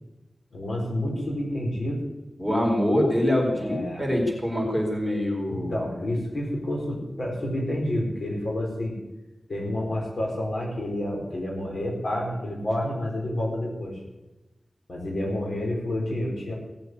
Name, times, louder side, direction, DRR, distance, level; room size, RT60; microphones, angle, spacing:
voice 1, 0.5-2.0 3.5-4.1 5.5-9.0 9.5-14.0 14.9-16.5, left 1 dB, 70° left, -1 dB, 5.0 m, -29 dB
voice 2, 2.4-5.8, left 1 dB, 5° left, -1 dB, 4.5 m, -24 dB
18.0 x 8.0 x 8.3 m, 1.1 s
wide cardioid pair, 85°, 0 cm